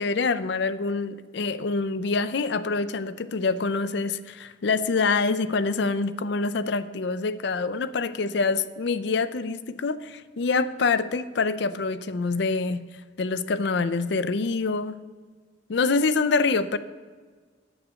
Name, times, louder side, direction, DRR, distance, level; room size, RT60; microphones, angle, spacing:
voice 1, 0.0-12.8 13.2-15.0 15.7-16.8, left 4 dB, 60° left, 14 dB, 0.5 m, -26 dB
9.0 x 8.2 x 6.3 m, 1.5 s
head